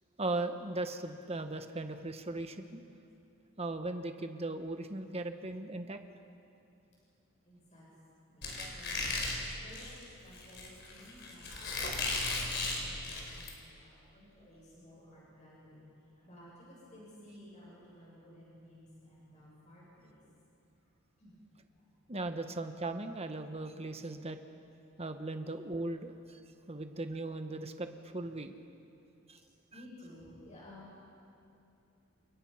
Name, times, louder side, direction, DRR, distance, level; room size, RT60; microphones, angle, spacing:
voice 1, 0.2-2.8 3.6-6.0 8.6-8.8 22.1-24.4 25.0-26.4 26.7-28.6 29.3-29.4 29.7-29.8, right 2 dB, 30° right, 7 dB, 1.3 m, -38 dB
voice 2, 7.4-7.9 8.3-9.3 9.6-11.5 12.1-15.8 16.2-20.2 21.2-21.4 29.7-31.0, left 1 dB, 35° left, -6 dB, 7.5 m, -55 dB
Squeak, 8.4-13.5, left 3 dB, 55° left, 4.8 m, -36 dB
29.0 x 27.0 x 5.8 m, 2.7 s
head